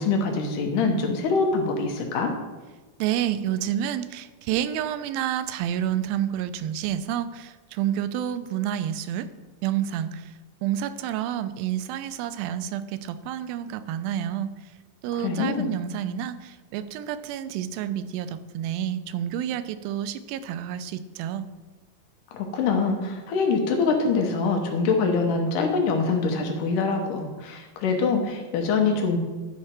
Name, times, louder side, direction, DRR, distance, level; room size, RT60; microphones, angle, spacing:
voice 1, 0.0-2.3 15.1-15.7 22.3-29.2, left 4 dB, 75° left, 3 dB, 2.4 m, -24 dB
voice 2, 3.0-9.3 9.6-10.3 10.6-14.5 15.0-21.5, right 10 dB, 90° right, 12 dB, 2.3 m, -29 dB
11.5 x 4.9 x 4.3 m, 1.2 s
omnidirectional pair, 4.0 m